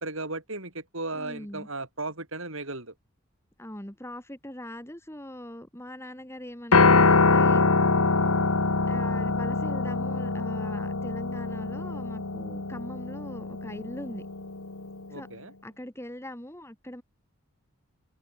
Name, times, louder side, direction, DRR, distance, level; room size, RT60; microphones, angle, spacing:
voice 1, 0.0-2.9 15.1-15.5, right 2 dB, 65° right, 5.9 m, -36 dB
voice 2, 1.1-1.7 3.6-7.6 8.8-14.3 15.1-15.3 15.6-17.0, left 1 dB, 10° left, 2.7 m, -41 dB
Piano, 6.7-15.0, left 3 dB, 80° left, 1.7 m, -24 dB
open air
head